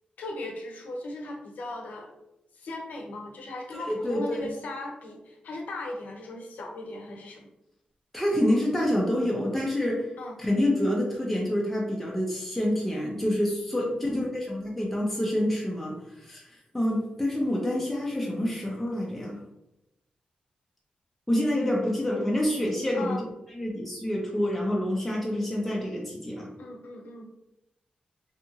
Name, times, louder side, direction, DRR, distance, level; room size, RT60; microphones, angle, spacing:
voice 1, 0.2-2.1 2.5-7.5 10.2-10.4 22.9-23.2 26.6-27.3, left 2 dB, 80° left, 1 dB, 0.5 m, -38 dB
voice 2, 3.9-4.5 8.1-10.1 10.4-16.5 16.7-19.4 21.3-23.2 23.5-26.5, left 1 dB, 5° left, -3 dB, 0.4 m, -27 dB
2.7 x 2.4 x 2.7 m, 0.89 s
wide cardioid pair, 125°, 3 cm